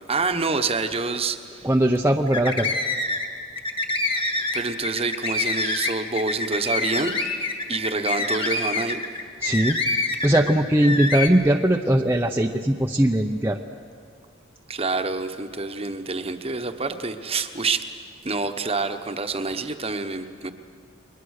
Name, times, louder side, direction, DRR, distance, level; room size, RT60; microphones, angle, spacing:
voice 1, 0.1-1.7 4.1-4.2 4.5-7.3 7.7-9.0 14.7-17.9 18.2-20.5, right 3 dB, 30° right, 8 dB, 1.1 m, -27 dB
voice 2, 1.6-2.7 9.4-9.8 10.2-13.6, right 1 dB, 10° right, 2 dB, 0.7 m, -20 dB
sound 1, 2.3-3.3 3.5-10.5 10.8-11.3, left 3 dB, 25° left, 1.8 m, -26 dB
29.5 x 22.5 x 6.6 m, 2.1 s
head